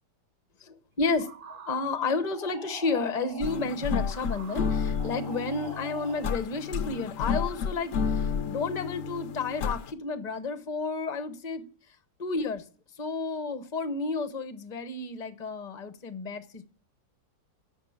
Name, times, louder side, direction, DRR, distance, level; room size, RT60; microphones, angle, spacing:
voice 1, 0.6-11.6 12.2-12.6 13.0-16.6, left 3 dB, 30° left, 1.0 m, -31 dB
sound 1, 1.1-6.6, right 7 dB, 55° right, 0.6 m, -46 dB
sound 2, 3.4-9.9, left 6 dB, 60° left, 1.0 m, -31 dB
11.5 x 7.5 x 8.7 m
omnidirectional pair, 1.8 m